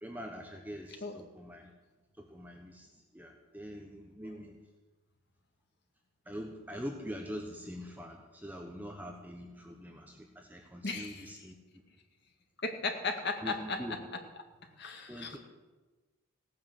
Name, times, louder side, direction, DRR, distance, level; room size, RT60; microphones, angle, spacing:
voice 1, 0.0-1.7 2.2-4.6 6.3-11.6 13.4-14.0 15.1-15.4, equal, 10° right, 2 dB, 1.1 m, -44 dB
voice 2, 10.8-11.3 12.6-14.2 14.8-15.4, left 3 dB, 50° left, 4 dB, 2.0 m, -36 dB
16.5 x 9.5 x 7.9 m, 1.2 s
head